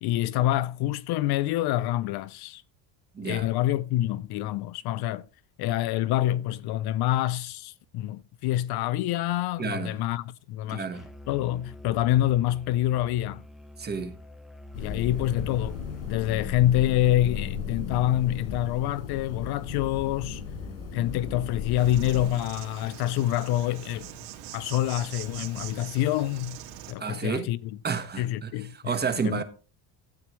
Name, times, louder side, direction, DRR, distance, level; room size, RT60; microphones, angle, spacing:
voice 1, 0.0-2.6 3.2-5.3 5.6-10.8 11.3-13.4 14.8-15.8 16.0-20.4 20.9-24.1 24.5-26.6 26.9-27.6 28.2-29.0 29.2-29.4, left 13 dB, 55° left, 0.5 m, -26 dB
voice 2, 3.1-3.5 9.6-10.0 10.7-11.0 13.8-14.2 27.0-27.5 27.8-29.4, right 5 dB, 20° right, 1.3 m, -31 dB
Musical instrument, 10.9-16.6, equal, ahead, 0.6 m, -46 dB
sound 1, 14.7-22.3, left 6 dB, 80° left, 6.7 m, -35 dB
Insect, 21.8-26.9, right 10 dB, 80° right, 2.2 m, -42 dB
13.0 x 8.5 x 3.1 m
cardioid pair, 145°, 45 cm